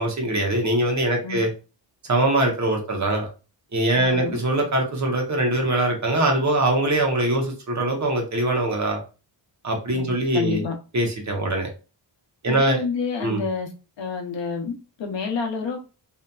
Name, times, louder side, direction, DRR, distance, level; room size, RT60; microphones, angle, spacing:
voice 1, 0.0-1.5 2.1-3.3 3.7-9.0 9.6-10.6 10.9-11.7 12.4-12.8 13.2-13.4, right 1 dB, 40° right, 0.8 m, -22 dB
voice 2, 4.0-4.4 9.9-10.1 10.3-10.7 12.5-13.7 14.0-15.8, left 5 dB, 80° left, 0.7 m, -28 dB
2.8 x 2.3 x 2.2 m
wide cardioid pair, 145°, 43 cm